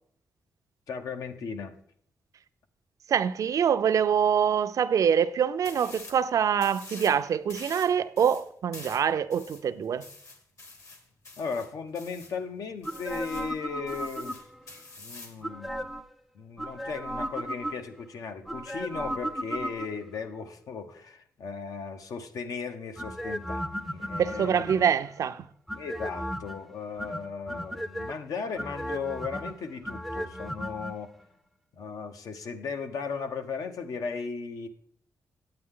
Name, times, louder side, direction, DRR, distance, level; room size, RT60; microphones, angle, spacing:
voice 1, 0.9-1.8 11.4-14.5 15.0-15.9 16.3-24.8 25.8-31.1 31.7-34.7, left 5 dB, 75° left, 0.9 m, -36 dB
voice 2, 3.1-10.1 24.2-25.5, right 8 dB, 65° right, 0.5 m, -25 dB
sound 1, 5.6-6.2 6.6-7.2 7.5-12.4 12.8-13.5 13.9-15.4, left 3 dB, 55° left, 1.6 m, -46 dB
sound 2, 12.8-14.7 15.4-16.1 16.6-18.0 18.5-20.2 23.0-25.1 25.7-26.6 27.0-28.1 28.6-30.9 31.2-31.3, equal, ahead, 0.5 m, -35 dB
9.7 x 8.8 x 3.7 m
cardioid pair, 110°, 6 cm